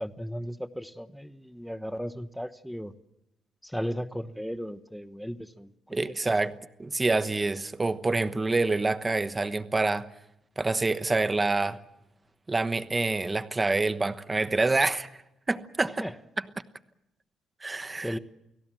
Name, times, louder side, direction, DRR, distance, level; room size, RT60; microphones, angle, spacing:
voice 1, 0.0-2.9 3.6-6.0 6.3-6.4 16.0-16.1 18.0-18.2, equal, ahead, 1.2 m, -36 dB
voice 2, 5.9-10.1 10.6-11.8 12.5-15.1 15.5-16.0 17.6-18.2, right 3 dB, 20° right, 1.1 m, -27 dB
29.5 x 18.0 x 7.6 m
cardioid pair, 90°, 0 cm